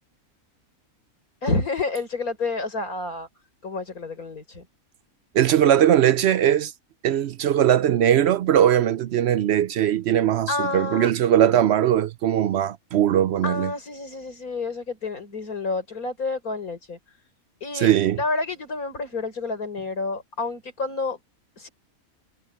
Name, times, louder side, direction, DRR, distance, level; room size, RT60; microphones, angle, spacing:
voice 1, 1.4-3.3 3.6-4.6 10.5-11.1 13.4-17.0 17.6-17.9 18.2-21.2 21.6-21.7, left 3 dB, 80° left, 5.1 m, -29 dB
voice 2, 5.3-6.7 7.0-13.7 17.7-18.2, right 10 dB, 65° right, 0.7 m, -20 dB
omnidirectional pair, 1.5 m